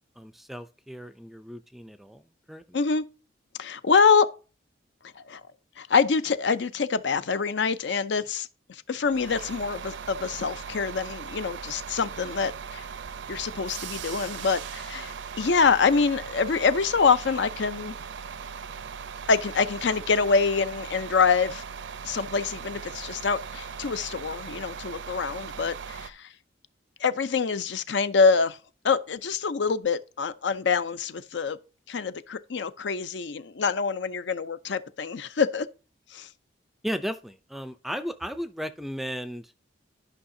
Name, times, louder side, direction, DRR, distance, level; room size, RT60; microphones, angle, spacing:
voice 1, 0.2-2.8 36.8-39.5, equal, ahead, 0.4 m, -35 dB
voice 2, 2.7-3.0 3.6-4.3 5.2-5.4 5.8-12.9 13.3-17.9 19.3-21.6 22.0-26.3 27.0-28.6 28.8-31.6 31.9-35.7 36.1-36.3, left 5 dB, 65° left, 0.5 m, -25 dB
sound 1, 9.1-26.1, right 6 dB, 70° right, 0.5 m, -39 dB
11.5 x 5.6 x 2.7 m
head